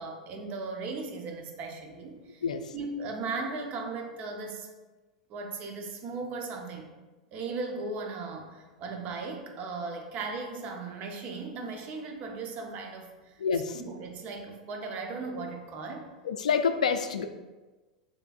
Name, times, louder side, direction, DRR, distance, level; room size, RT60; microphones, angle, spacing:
voice 1, 0.0-2.4 2.7-4.7 5.3-6.9 7.3-13.4 13.7-16.0, right 3 dB, 40° right, 3 dB, 0.8 m, -37 dB
voice 2, 2.4-2.7 13.4-13.8 16.2-17.2, left 6 dB, 75° left, 8 dB, 0.3 m, -27 dB
6.7 x 3.0 x 2.5 m, 1.2 s
hypercardioid pair, 90°, 4 cm